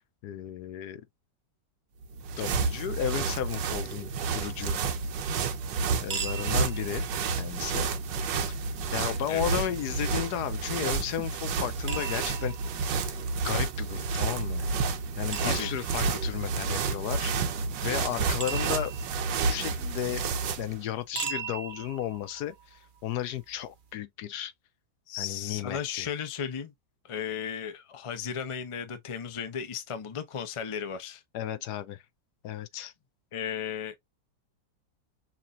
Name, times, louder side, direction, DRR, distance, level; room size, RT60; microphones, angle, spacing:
voice 1, 0.2-1.0 2.4-4.1 4.3-4.8 6.0-7.0 7.4-7.9 8.9-12.6 13.0-13.1 13.4-14.7 15.2-17.3 17.8-18.9 19.5-20.2 20.6-24.5 25.2-26.1 31.3-32.0 32.4-32.9, left 11 dB, 70° left, 1.1 m, -34 dB
sound 1, 2.0-20.8, right 4 dB, 85° right, 1.5 m, -30 dB
sound 2, 6.0-23.9, right 6 dB, 45° right, 0.7 m, -43 dB
voice 2, 9.3-9.6 15.4-15.7 25.1-26.7 27.0-31.2 33.3-34.0, left 7 dB, 40° left, 0.4 m, -35 dB
5.9 x 2.8 x 2.4 m
omnidirectional pair, 1.9 m